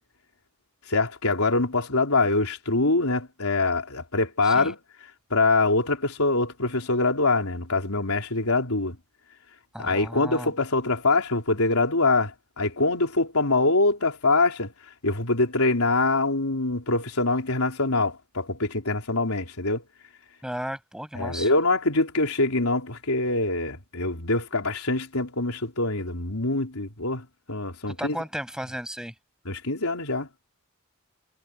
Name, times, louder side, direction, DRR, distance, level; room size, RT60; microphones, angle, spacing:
voice 1, 0.9-4.8 5.3-9.0 9.8-14.7 15.0-19.8 21.1-28.2 29.5-30.3, left 3 dB, 90° left, 3.8 m, -24 dB
voice 2, 9.7-10.5 20.4-21.5 27.9-29.1, equal, 5° right, 7.7 m, -34 dB
head